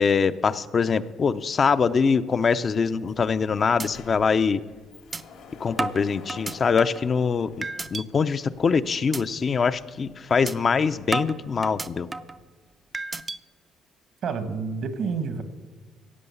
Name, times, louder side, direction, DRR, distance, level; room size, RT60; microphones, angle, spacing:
voice 1, 0.0-4.6 5.6-12.1, left 5 dB, 45° left, 12 dB, 0.6 m, -23 dB
Sliding door, 3.1-3.2 3.5-8.5, left 5 dB, 80° left, 2.1 m, -48 dB
sound 1, 3.1-3.4 3.8-3.9 4.3-4.4 5.1-5.2 5.8-7.1 7.6-8.0 8.5-8.7 9.1-9.2 9.6-9.8 10.5-10.6 11.1-12.4 12.9-13.4, right 3 dB, 25° right, 0.5 m, -32 dB
voice 2, 14.2-15.4, right 5 dB, 65° right, 9 dB, 1.4 m, -29 dB
16.5 x 7.7 x 7.0 m, 1.4 s
cardioid pair, 80°, 0 cm